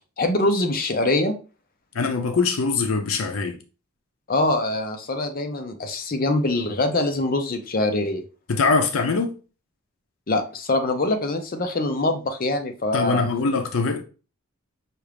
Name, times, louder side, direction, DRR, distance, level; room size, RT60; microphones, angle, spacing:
voice 1, 0.2-1.3 4.3-8.2 10.3-13.3, left 2 dB, 45° left, 0.6 m, -23 dB
voice 2, 1.9-3.6 8.5-9.4 12.9-14.0, left 4 dB, 85° left, 0.6 m, -23 dB
5.9 x 2.4 x 3.3 m
head